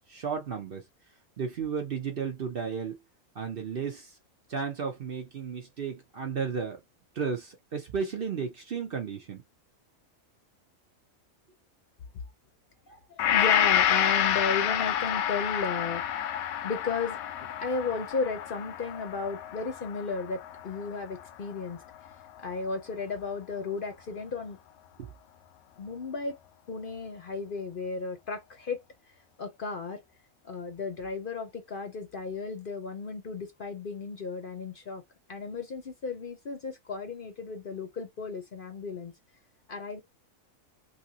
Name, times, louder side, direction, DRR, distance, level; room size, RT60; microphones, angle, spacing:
voice 1, 0.1-0.8 1.4-3.0 3.3-4.2 4.5-6.8 7.1-9.4 25.0-25.1, right 6 dB, 55° right, 0.7 m, -33 dB
voice 2, 12.9-21.8 22.4-24.6 25.8-26.4 26.7-28.8 29.4-30.0 30.4-35.0 35.3-39.1 39.7-40.0, left 4 dB, 50° left, 0.7 m, -34 dB
Gong, 13.2-21.5 22.0-22.1, left 10 dB, 85° left, 1.0 m, -28 dB
3.3 x 2.6 x 2.7 m
omnidirectional pair, 1.4 m